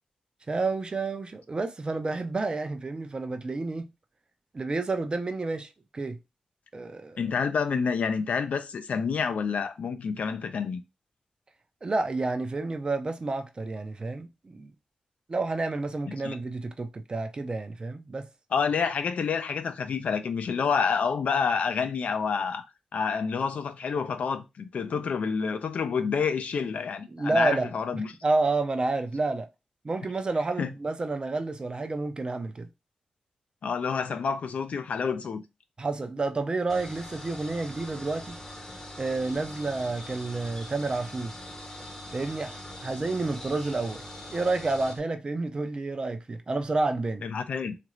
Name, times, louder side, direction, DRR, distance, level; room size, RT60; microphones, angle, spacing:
voice 1, 0.5-3.9 4.5-6.2 6.7-7.2 11.8-14.7 15.3-18.3 27.1-29.5 29.8-32.7 35.8-38.4 39.0-41.3 42.1-42.5 42.8-44.0 44.3-47.3, right 3 dB, 40° right, 0.5 m, -30 dB
voice 2, 7.2-10.8 16.2-16.3 18.5-22.6 22.9-28.1 30.6-30.7 33.6-35.4 47.2-47.8, left 6 dB, 75° left, 0.4 m, -28 dB
sound 1, 36.7-45.0, left 1 dB, 20° left, 0.7 m, -42 dB
3.0 x 2.5 x 3.0 m
cardioid pair, 65°, 2 cm